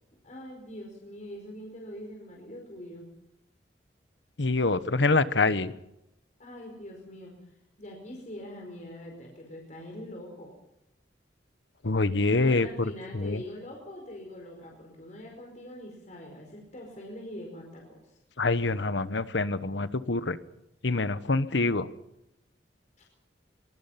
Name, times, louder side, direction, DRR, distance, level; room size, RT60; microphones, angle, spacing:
voice 1, 0.2-3.1 6.4-7.3 7.8-10.5 12.4-18.0, left 1 dB, 40° left, 0 dB, 5.0 m, -43 dB
voice 2, 4.4-5.7 11.8-13.4 18.4-20.4 20.8-21.9, left 3 dB, 75° left, 14 dB, 1.1 m, -26 dB
23.0 x 23.0 x 5.8 m, 0.85 s
head